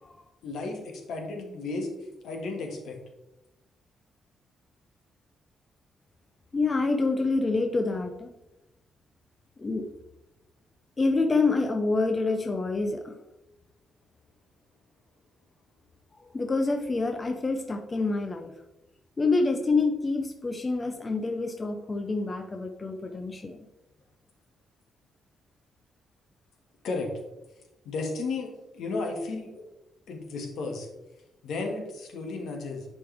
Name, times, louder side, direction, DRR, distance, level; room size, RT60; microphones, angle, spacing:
voice 1, 0.4-1.9 2.2-3.0 26.8-27.1 27.9-29.6 30.1-30.9 31.4-32.9, left 3 dB, 75° left, 2 dB, 1.8 m, -33 dB
voice 2, 6.5-8.3 9.6-9.8 11.0-13.2 16.3-18.5 19.2-23.6, left 3 dB, 20° left, 4 dB, 0.6 m, -27 dB
10.0 x 5.3 x 3.4 m, 0.95 s
cardioid pair, 155°, 0 cm